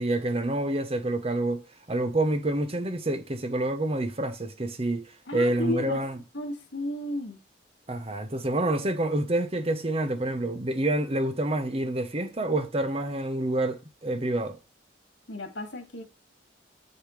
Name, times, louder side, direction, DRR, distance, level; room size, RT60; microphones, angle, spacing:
voice 1, 0.0-6.2 7.9-14.6, right 1 dB, 35° right, 1.0 m, -28 dB
voice 2, 5.3-6.0 6.3-7.4 15.3-16.0, left 1 dB, 90° left, 2.2 m, -33 dB
8.0 x 6.7 x 3.3 m
head